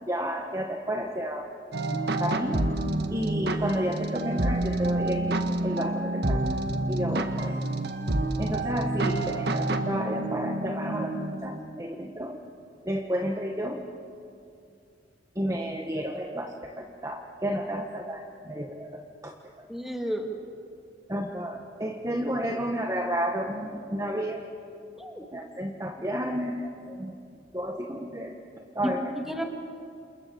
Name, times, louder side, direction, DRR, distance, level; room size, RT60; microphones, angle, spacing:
voice 1, 0.0-1.5 1.9-2.7 3.1-6.4 6.9-7.5 8.4-12.4 12.8-13.8 15.3-19.3 19.6-19.7 21.1-24.4 25.3-27.1 27.5-28.4 28.7-29.1, equal, 20° right, 2 dB, 1.5 m, -31 dB
sound 1, 1.7-11.6, right 2 dB, 60° right, 1.7 m, -28 dB
voice 2, 19.7-20.3 25.0-25.2 28.8-29.4, equal, ahead, 2 dB, 2.7 m, -32 dB
29.0 x 28.0 x 7.1 m, 2.4 s
head